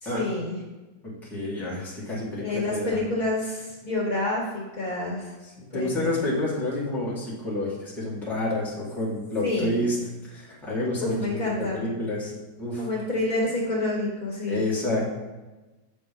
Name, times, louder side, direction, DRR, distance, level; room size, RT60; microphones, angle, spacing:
voice 1, 0.0-0.6 2.4-5.3 5.7-6.1 9.4-9.7 11.0-11.9 12.8-14.7, left 2 dB, 45° left, -4 dB, 2.3 m, -28 dB
voice 2, 1.0-3.0 5.6-10.0 10.2-12.3 12.6-12.8 14.5-15.1, left 1 dB, ahead, -7 dB, 2.0 m, -29 dB
8.2 x 5.9 x 5.5 m, 1.2 s
omnidirectional pair, 2.2 m